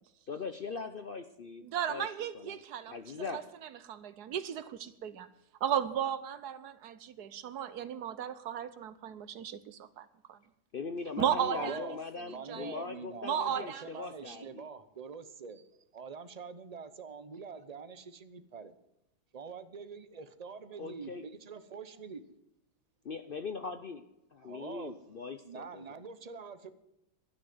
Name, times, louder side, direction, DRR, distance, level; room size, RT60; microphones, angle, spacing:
voice 1, 0.3-3.4 10.7-14.7 20.8-21.3 23.0-24.0 24.3-25.9, left 4 dB, 50° left, 0.6 m, -41 dB
voice 2, 1.6-3.4 3.8-5.3 5.6-10.4 11.2-11.8 12.5-12.8 13.2-13.8, right 9 dB, 75° right, 1.4 m, -35 dB
voice 3, 11.5-12.0 12.3-15.6 15.9-18.7 19.3-22.2 24.4-24.9 25.4-26.7, right 5 dB, 35° right, 0.7 m, -44 dB
12.0 x 10.0 x 7.8 m
omnidirectional pair, 1.7 m